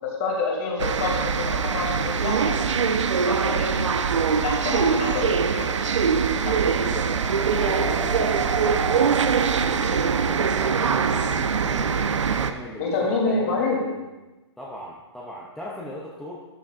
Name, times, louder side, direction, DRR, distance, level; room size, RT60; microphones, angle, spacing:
voice 1, 0.0-2.6 3.0-4.1 4.4-5.9 6.4-6.6 12.8-13.8, left 3 dB, 30° left, -1 dB, 2.7 m, -28 dB
sound 1, 0.8-12.5, right 6 dB, 80° right, 0.8 m, -23 dB
voice 2, 6.7-7.2 7.4-9.2 9.6-12.0 12.4-14.1 14.6-16.4, left 1 dB, ahead, -5 dB, 0.5 m, -38 dB
13.0 x 12.0 x 2.5 m, 1.1 s
hypercardioid pair, 170°, 15 cm